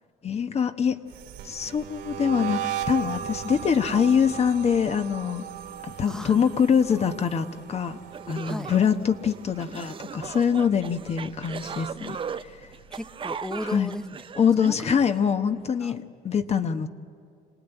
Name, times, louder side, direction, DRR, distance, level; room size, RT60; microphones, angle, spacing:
voice 1, 0.2-1.0 1.4-5.4 5.8-8.0 8.3-12.2 13.7-13.9 14.4-16.9, left 7 dB, 40° left, 8 dB, 1.2 m, -24 dB
sound 1, 1.1-10.3 10.5-11.0 11.3-12.9, right 10 dB, 80° right, 2.5 m, -37 dB
voice 2, 6.1-6.5 6.9-7.1 8.5-8.7 12.9-14.2 14.6-15.0 15.8-15.9, equal, 5° left, 11 dB, 0.8 m, -35 dB
sound 2, 7.7-7.8 8.1-15.2, right 7 dB, 30° right, 0.6 m, -38 dB
26.5 x 19.0 x 9.2 m, 2.4 s
cardioid pair, 110°, 17 cm